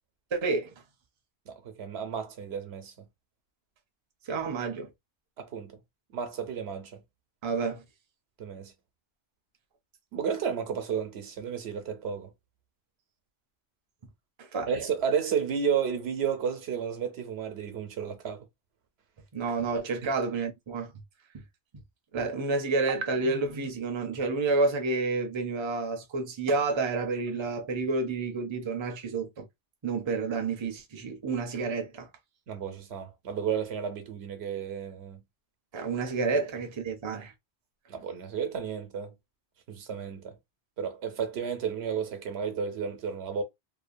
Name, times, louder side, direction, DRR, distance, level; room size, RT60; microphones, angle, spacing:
voice 1, 0.3-0.7 4.3-4.9 7.4-7.8 14.4-14.7 19.3-20.9 21.3-21.4 22.1-29.5 29.8-32.1 35.7-37.3, right 3 dB, 35° right, 0.5 m, -29 dB
voice 2, 1.5-2.9 5.4-5.8 6.1-7.0 8.4-8.7 10.1-12.3 14.7-18.5 20.0-20.1 32.5-35.2 37.9-39.1 39.7-40.4 40.8-43.4, right 7 dB, 85° right, 1.0 m, -32 dB
2.7 x 2.1 x 2.5 m
omnidirectional pair, 1.1 m